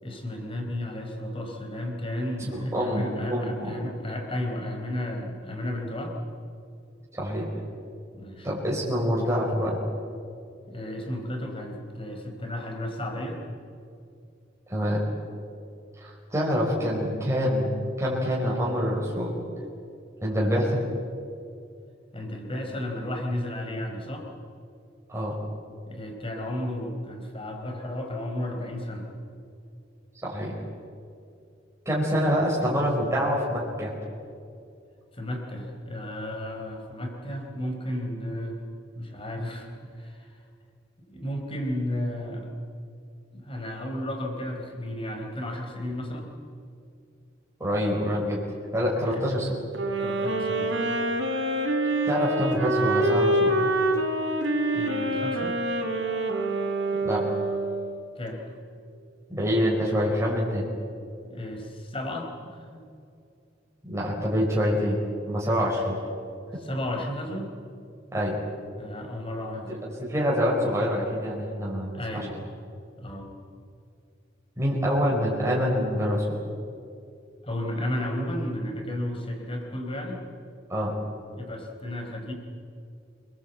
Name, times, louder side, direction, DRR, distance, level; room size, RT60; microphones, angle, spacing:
voice 1, 0.0-6.1 8.1-8.5 10.7-13.4 22.1-24.3 25.9-29.1 35.1-38.6 38.9-40.4 41.1-42.5 43.3-46.3 49.0-49.3 50.0-50.8 54.7-55.6 58.2-58.4 61.2-62.8 66.6-67.5 68.8-69.8 71.9-72.4 73.0-73.3 77.4-80.2 81.3-82.3, left 1 dB, 30° left, 2 dB, 4.7 m, -33 dB
voice 2, 2.4-3.7 7.1-7.5 8.4-9.8 14.7-15.0 16.0-17.7 18.0-19.4 20.2-20.8 25.1-25.3 30.2-30.5 31.8-33.9 47.6-48.4 48.7-49.5 52.0-53.5 57.0-57.2 59.3-60.6 63.8-65.0 65.3-66.0 68.1-68.3 70.0-72.2 74.6-76.2 80.7-80.9, equal, 15° right, -5 dB, 4.8 m, -26 dB
sound 1, 49.7-57.9, right 1 dB, 80° right, 3.6 m, -26 dB
28.0 x 21.5 x 8.3 m, 2.4 s
head